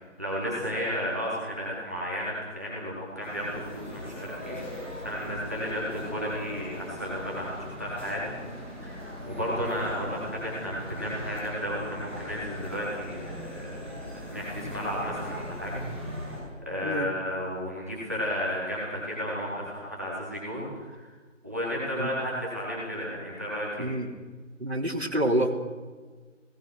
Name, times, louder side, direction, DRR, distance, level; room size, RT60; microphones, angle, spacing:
voice 1, 0.2-8.2 8.5-15.8 16.7-21.1 21.4-23.9, equal, 15° right, -6 dB, 4.2 m, -33 dB
sound 1, 3.2-16.4, equal, 10° left, 7.1 m, -39 dB
voice 2, 23.8-24.1 24.6-25.6, right 1 dB, 55° right, 3 dB, 3.6 m, -27 dB
28.5 x 19.5 x 6.4 m, 1.4 s
figure-of-eight pair, 175°, 38 cm